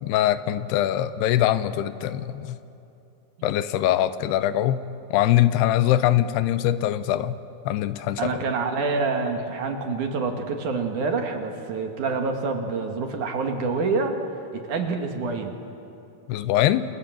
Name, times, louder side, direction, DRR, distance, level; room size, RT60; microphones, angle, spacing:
voice 1, 0.0-2.6 3.4-4.8 5.1-7.4 7.7-8.3 16.3-16.8, left 12 dB, 85° left, 13 dB, 2.8 m, -22 dB
voice 2, 8.2-14.1 14.5-15.6, right 4 dB, 55° right, 4 dB, 2.8 m, -27 dB
27.5 x 27.0 x 7.7 m, 2.8 s
omnidirectional pair, 4.6 m